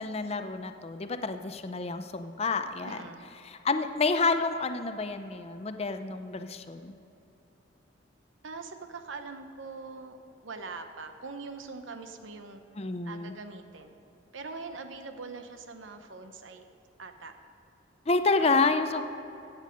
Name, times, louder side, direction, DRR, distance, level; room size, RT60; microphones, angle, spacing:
voice 1, 0.0-3.0 3.4-7.0 12.7-13.3 18.1-19.0, left 3 dB, 30° left, 8 dB, 0.6 m, -29 dB
voice 2, 2.8-3.3 8.4-10.2 10.4-12.6 13.0-13.9 14.3-16.7 17.0-17.3 18.4-18.6 18.9-19.0, right 4 dB, 85° right, 7 dB, 0.9 m, -42 dB
15.0 x 8.2 x 5.2 m, 2.9 s
head